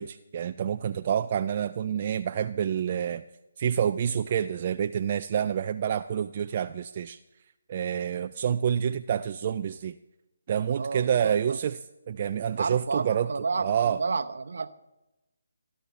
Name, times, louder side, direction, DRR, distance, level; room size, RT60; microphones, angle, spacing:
voice 1, 0.0-3.2 3.6-7.2 7.7-10.0 10.5-13.3 13.6-14.0, right 8 dB, 40° right, 8 dB, 0.4 m, -28 dB
voice 2, 10.8-11.6 12.6-14.7, right 4 dB, 60° right, 10 dB, 0.9 m, -31 dB
27.5 x 11.0 x 3.4 m, 0.98 s
figure-of-eight pair, 145°, 0 cm